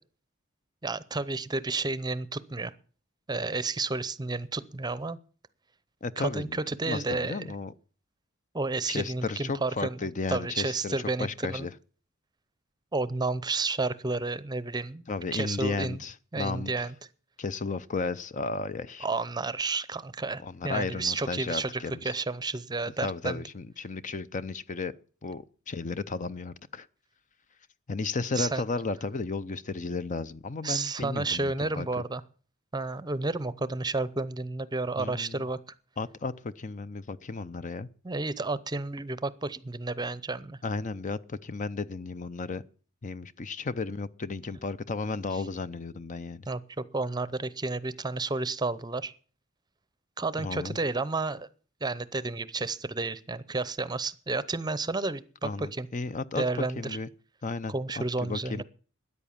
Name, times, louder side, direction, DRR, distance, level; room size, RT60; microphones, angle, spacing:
voice 1, 0.8-2.7 3.3-5.2 6.2-7.5 8.5-10.0 10.3-11.7 12.9-15.0 15.3-16.0 16.3-16.9 19.0-23.4 28.3-28.6 30.6-32.2 32.7-35.6 38.0-40.6 45.3-45.4 46.5-49.1 50.2-51.5 51.8-55.9 56.4-57.0 57.7-58.6, right 3 dB, 20° right, 0.7 m, -31 dB
voice 2, 6.0-6.6 6.9-7.7 8.9-11.7 15.1-16.9 17.4-19.1 20.4-22.1 23.0-24.9 25.2-26.9 27.9-31.9 35.0-35.4 36.0-37.9 40.6-42.6 43.0-46.5 50.4-50.8 55.4-56.4 56.8-57.1 57.4-58.6, left 4 dB, 40° left, 0.6 m, -34 dB
13.5 x 9.8 x 7.2 m
head